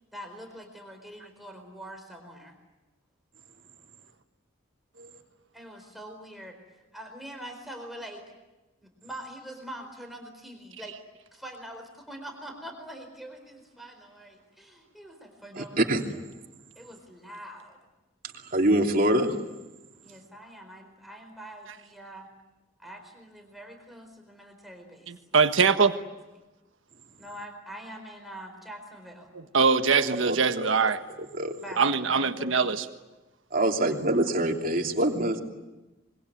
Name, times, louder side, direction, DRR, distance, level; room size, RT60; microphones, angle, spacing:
voice 1, 0.1-2.6 5.5-6.6 6.9-8.3 8.8-11.0 11.3-16.2 16.8-17.8 20.0-22.3 22.8-25.4 25.8-25.9 27.2-29.3 31.6-32.7 33.8-34.8, equal, ahead, 3 dB, 4.4 m, -44 dB
voice 2, 15.5-16.0 18.5-19.3 30.3-30.6 31.3-31.5 33.5-35.4, right 1 dB, 45° right, 2 dB, 3.0 m, -25 dB
voice 3, 25.1-25.9 29.5-31.0 31.8-32.8, right 5 dB, 80° right, 8 dB, 1.5 m, -22 dB
26.0 x 22.5 x 9.4 m, 1.1 s
head